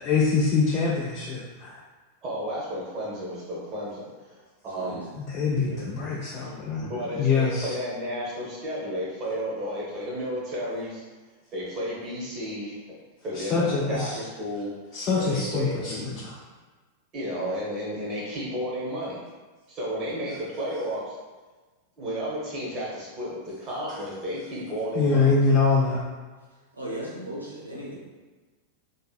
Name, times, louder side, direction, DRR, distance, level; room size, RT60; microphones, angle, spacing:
voice 1, 0.0-1.8 5.2-6.8 7.2-7.7 13.4-14.1 14.9-16.1 24.9-26.0, left 4 dB, 35° left, -5 dB, 0.4 m, -24 dB
voice 2, 2.2-5.0 6.8-11.0 11.5-13.0 13.2-14.7 15.2-16.0 17.1-19.2 19.7-21.2 22.0-25.3, equal, 30° right, -6 dB, 1.0 m, -32 dB
voice 3, 5.7-6.6 26.7-27.9, right 1 dB, 80° right, -6 dB, 0.7 m, -38 dB
2.7 x 2.6 x 2.2 m, 1.3 s
figure-of-eight pair, 90°, 0 cm